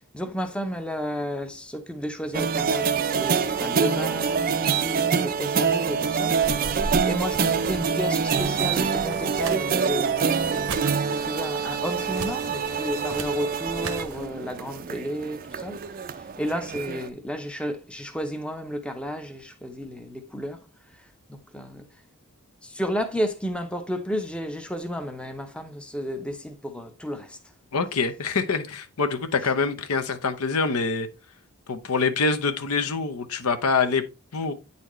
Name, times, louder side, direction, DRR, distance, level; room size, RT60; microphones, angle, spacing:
voice 1, 0.0-6.7 7.0-20.7 21.3-21.9 22.6-27.4, equal, 5° left, 0.6 m, -32 dB
sound 1, 2.3-17.1, right 6 dB, 40° right, 0.4 m, -26 dB
sound 2, 6.3-14.3, right 3 dB, 70° right, 0.9 m, -38 dB
voice 2, 27.7-31.1 31.7-34.0 34.3-34.5, left 4 dB, 75° left, 0.8 m, -25 dB
9.1 x 4.2 x 3.0 m
head